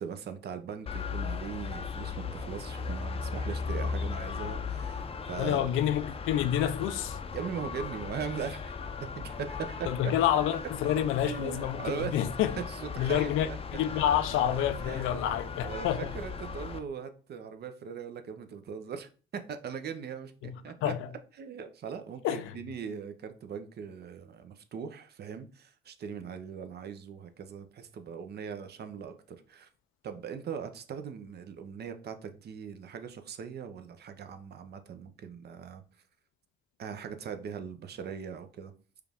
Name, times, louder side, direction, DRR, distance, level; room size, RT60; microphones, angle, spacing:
voice 1, 0.0-5.7 7.3-8.7 9.1-10.1 11.2-12.1 12.7-13.6 14.8-15.2 15.6-20.9 21.4-29.1 29.5-29.7 30.0-35.8 36.8-38.7, right 7 dB, 55° right, 0.6 m, -40 dB
sound 1, 0.9-16.8, left 5 dB, 30° left, 0.5 m, -37 dB
voice 2, 5.4-7.2 9.9-12.5 13.0-16.1 20.4-21.1 22.2-22.6, left 11 dB, 90° left, 0.4 m, -28 dB
4.7 x 2.4 x 3.4 m
cardioid pair, 90°, 20 cm